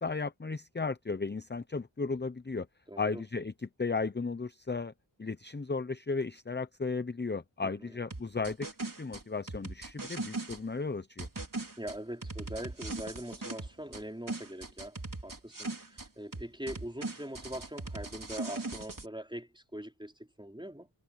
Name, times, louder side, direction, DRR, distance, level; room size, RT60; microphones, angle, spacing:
voice 1, 0.0-2.7 3.0-4.9 5.2-8.7 9.0-11.3, left 4 dB, 25° left, 0.7 m, -35 dB
voice 2, 2.9-3.2 7.6-8.0 11.8-15.0 15.2-20.9, right 1 dB, 10° right, 4.3 m, -42 dB
sound 1, 8.1-10.6 11.2-14.0 14.3-16.1 16.3-19.1, right 3 dB, 45° right, 3.8 m, -39 dB
wide cardioid pair, 60°, 45 cm